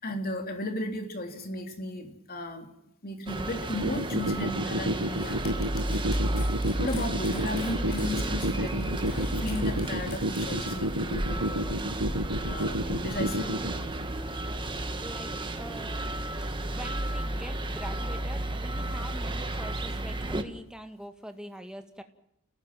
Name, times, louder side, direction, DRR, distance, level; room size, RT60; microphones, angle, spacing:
voice 1, 0.0-2.7 3.0-5.5 6.8-11.8 12.4-13.6, left 1 dB, 45° left, 4 dB, 3.4 m, -35 dB
sound 1, 3.3-20.4, right 1 dB, 20° right, 1.6 m, -32 dB
sound 2, 3.7-13.7, equal, 75° right, 1.7 m, -29 dB
sound 3, 5.0-10.8, left 4 dB, 85° left, 6.2 m, -47 dB
voice 2, 15.0-15.3 15.6-16.3 16.7-22.0, equal, 5° right, 6 dB, 1.9 m, -44 dB
29.5 x 18.0 x 7.6 m, 0.81 s
head